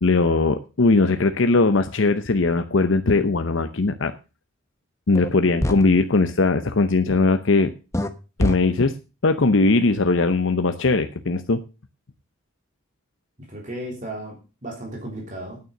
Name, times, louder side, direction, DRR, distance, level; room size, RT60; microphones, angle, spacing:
voice 1, 0.0-4.1 5.1-7.7 8.4-8.9 9.2-11.6, left 3 dB, 70° left, 8 dB, 0.8 m, -19 dB
sound 1, 5.1-5.3 5.6-5.8 7.9-8.1 8.4-8.5, left 1 dB, 15° left, 0.9 m, -23 dB
voice 2, 13.5-15.6, right 1 dB, 40° right, 1 dB, 3.4 m, -35 dB
9.6 x 9.2 x 6.5 m, 0.32 s
head